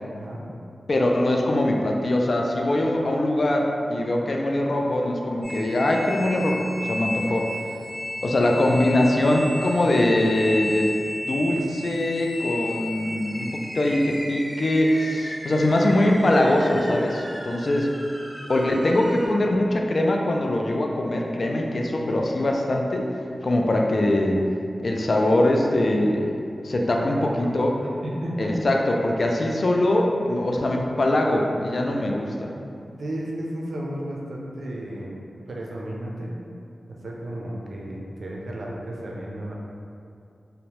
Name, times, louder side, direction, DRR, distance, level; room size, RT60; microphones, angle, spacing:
voice 1, 0.1-0.4 7.1-7.4 26.8-27.5 28.0-28.5 33.0-35.2 35.5-36.3 36.9-39.6, right 1 dB, 75° right, -3 dB, 0.4 m, -33 dB
voice 2, 0.9-7.4 8.2-10.9 11.3-17.9 18.5-23.1 23.4-24.5 24.8-26.3 26.6-27.7 28.4-32.5, left 1 dB, 60° left, 1 dB, 0.3 m, -22 dB
sound 1, 5.4-19.3, left 1 dB, 25° left, 0.8 m, -34 dB
2.7 x 2.0 x 2.9 m, 2.5 s
cardioid pair, 40°, 0 cm